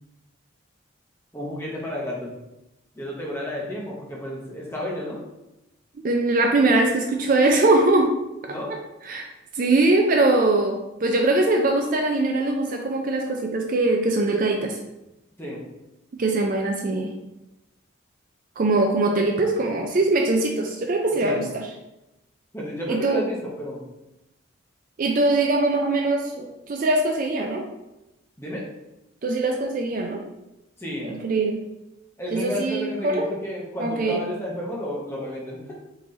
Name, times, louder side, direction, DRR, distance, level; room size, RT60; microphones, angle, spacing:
voice 1, 1.3-2.3 2.9-5.2 8.5-8.8 15.4-15.6 21.2-21.4 22.5-23.8 28.4-28.6 30.8-31.1 32.2-35.7, equal, 10° left, -4 dB, 0.9 m, -31 dB
voice 2, 6.0-8.1 9.1-9.3 9.6-14.8 16.2-17.1 18.6-21.6 22.9-23.2 25.0-27.7 29.2-30.2 31.0-31.6 32.3-33.3 33.8-34.2, right 2 dB, 40° right, 2 dB, 0.4 m, -22 dB
3.7 x 3.1 x 3.8 m, 0.94 s
head